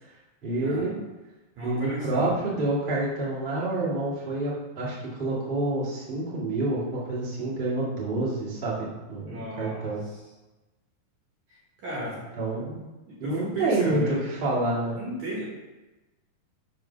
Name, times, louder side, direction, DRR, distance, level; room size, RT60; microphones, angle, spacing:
voice 1, 0.4-0.9 1.6-10.0 12.4-12.8 13.2-15.0, right 2 dB, 25° right, -9 dB, 1.2 m, -28 dB
voice 2, 1.6-2.3 9.3-10.2 11.5-12.2 13.0-14.2 14.9-15.4, equal, 55° right, -6 dB, 2.3 m, -35 dB
7.3 x 3.7 x 5.8 m, 1.1 s
omnidirectional pair, 5.0 m